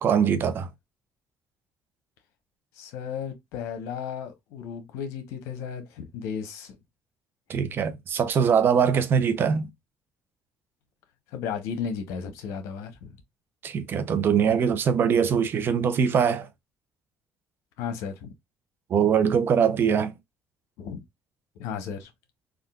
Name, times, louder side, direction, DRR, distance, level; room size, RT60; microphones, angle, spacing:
voice 1, 0.0-0.7 7.5-9.7 13.6-16.5 18.9-20.1, right 7 dB, 50° right, 0.6 m, -22 dB
voice 2, 2.8-6.8 11.3-13.2 17.8-18.3 20.8-21.0 21.6-22.1, left 7 dB, 85° left, 0.9 m, -34 dB
3.6 x 2.5 x 2.3 m
cardioid pair, 95°, 5 cm